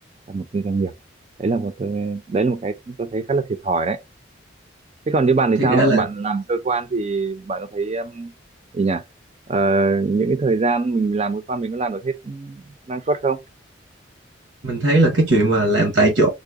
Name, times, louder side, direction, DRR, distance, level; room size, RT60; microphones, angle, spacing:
voice 1, 0.3-0.9 1.4-4.0 5.1-8.3 8.7-9.0 9.5-13.4, right 3 dB, 35° right, 0.4 m, -22 dB
voice 2, 5.6-6.1 14.6-16.3, right 2 dB, 85° right, 1.0 m, -17 dB
3.7 x 2.1 x 3.5 m
head